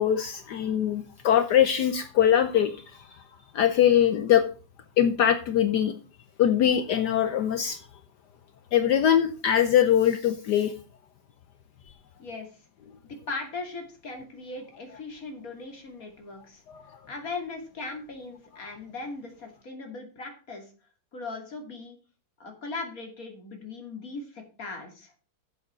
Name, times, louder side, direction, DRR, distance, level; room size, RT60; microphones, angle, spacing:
voice 1, 0.0-3.0 3.5-4.5 5.0-5.9 6.4-7.8 8.7-10.7 16.7-16.8, left 10 dB, 65° left, 10 dB, 1.2 m, -22 dB
voice 2, 12.2-12.5 13.1-16.6 17.1-20.7 21.1-22.0 22.4-25.1, left 3 dB, 45° left, 3 dB, 2.9 m, -38 dB
7.9 x 7.8 x 6.0 m, 0.36 s
omnidirectional pair, 2.1 m